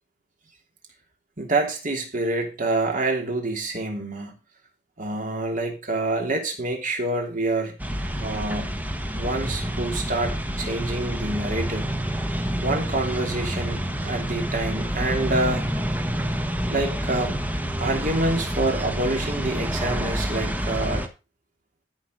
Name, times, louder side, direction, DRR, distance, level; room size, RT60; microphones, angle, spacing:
voice 1, 1.4-4.3 5.0-7.8 8.2-8.8 9.1-11.9 12.6-15.7 16.7-17.4 17.8-21.0, right 2 dB, 45° right, 3 dB, 3.0 m, -27 dB
sound 1, 7.8-21.1, equal, 10° right, 1.2 m, -28 dB
13.0 x 6.2 x 5.1 m, 0.29 s
head